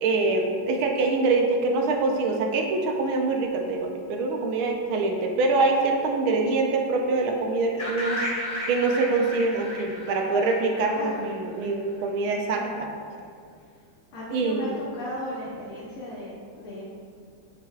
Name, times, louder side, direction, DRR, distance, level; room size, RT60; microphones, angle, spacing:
voice 1, 0.0-8.2 8.7-12.9 14.3-14.8, right 3 dB, 80° right, 2 dB, 1.6 m, -24 dB
sound 1, 7.8-11.7, equal, 30° left, 1.2 m, -34 dB
voice 2, 10.9-11.2 12.3-12.7 14.1-16.8, left 1 dB, 90° left, -7 dB, 1.9 m, -36 dB
8.5 x 6.0 x 2.4 m, 2.2 s
omnidirectional pair, 2.2 m